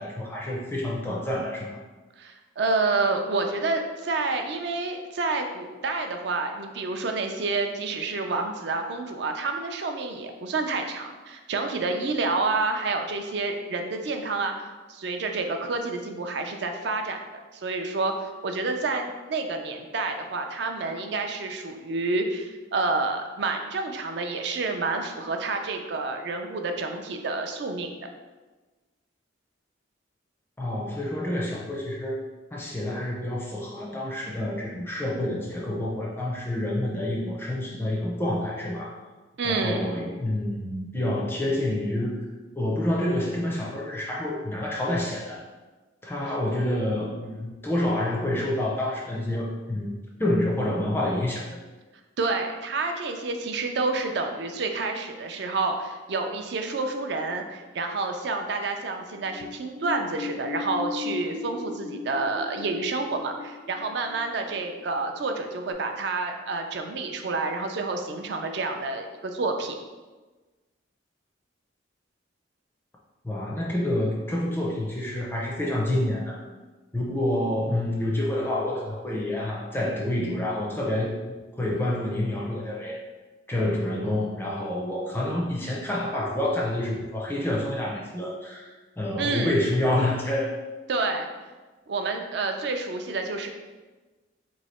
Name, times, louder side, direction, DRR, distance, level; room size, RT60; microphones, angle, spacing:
voice 1, 0.0-1.7 30.6-32.2 32.5-39.0 39.4-42.2 42.6-45.4 46.0-51.6 73.2-76.4 76.9-81.2 81.5-83.0 83.5-90.5, left 1 dB, 10° left, -3 dB, 0.4 m, -28 dB
voice 2, 2.2-14.5 14.9-28.0 39.4-40.0 52.2-69.8 89.2-89.6 90.9-91.3 91.9-93.5, right 3 dB, 60° right, 5 dB, 0.4 m, -29 dB
sound 1, 59.0-65.3 65.7-65.8, left 4 dB, 85° left, 0.5 m, -38 dB
3.1 x 2.7 x 4.2 m, 1.2 s
head